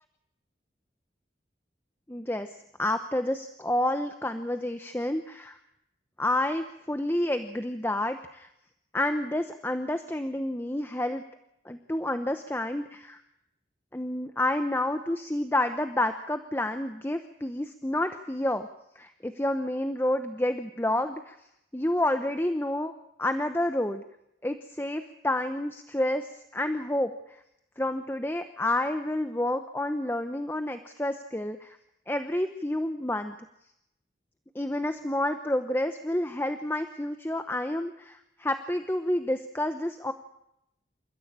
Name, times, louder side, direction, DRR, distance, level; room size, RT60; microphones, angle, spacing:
voice 1, 2.1-2.5 2.8-5.6 6.2-8.5 8.9-11.2 11.6-13.2 13.9-18.7 19.0-21.4 21.7-22.9 23.2-24.0 24.4-27.4 27.8-31.8 32.1-33.3 34.5-40.1, left 1 dB, 15° left, 8 dB, 0.9 m, -29 dB
28.5 x 14.0 x 8.8 m, 0.81 s
head